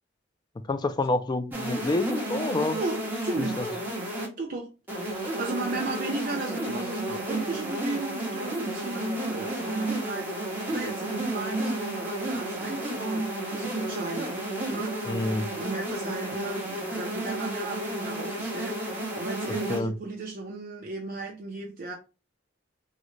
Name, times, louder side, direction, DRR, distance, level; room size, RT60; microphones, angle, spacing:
voice 1, 0.7-2.8 3.4-3.7 15.0-15.5 19.7-19.9, left 2 dB, 25° left, 0.3 m, -28 dB
sound 1, 1.5-4.3 4.9-19.8, right 1 dB, 10° right, 1.0 m, -33 dB
voice 2, 2.7-3.6 4.4-4.7 5.0-14.4 14.7-15.1 15.6-21.9, right 3 dB, 50° right, 0.5 m, -34 dB
3.7 x 2.1 x 3.1 m
head